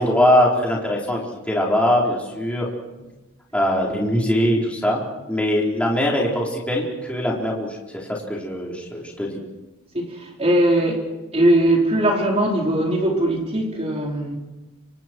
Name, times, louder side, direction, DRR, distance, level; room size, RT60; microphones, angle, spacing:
voice 1, 0.0-2.7 3.5-5.0 5.3-7.8 8.1-9.4, left 1 dB, 5° left, -3 dB, 4.5 m, -21 dB
voice 2, 9.9-11.1 11.3-14.4, right 1 dB, 30° right, -1 dB, 4.7 m, -20 dB
30.0 x 26.5 x 4.7 m, 1.1 s
head